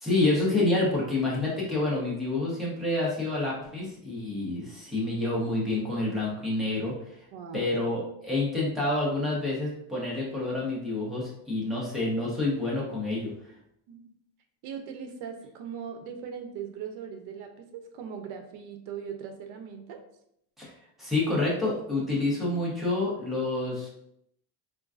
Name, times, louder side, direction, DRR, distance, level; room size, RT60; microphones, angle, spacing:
voice 1, 0.0-6.9 7.5-13.3 20.6-20.7 21.0-23.9, left 2 dB, ahead, -7 dB, 0.9 m, -28 dB
voice 2, 7.3-7.8 13.9-14.1 14.6-20.0, right 7 dB, 70° right, 5 dB, 0.7 m, -39 dB
3.7 x 2.4 x 2.4 m, 0.74 s
cardioid pair, 145°, 46 cm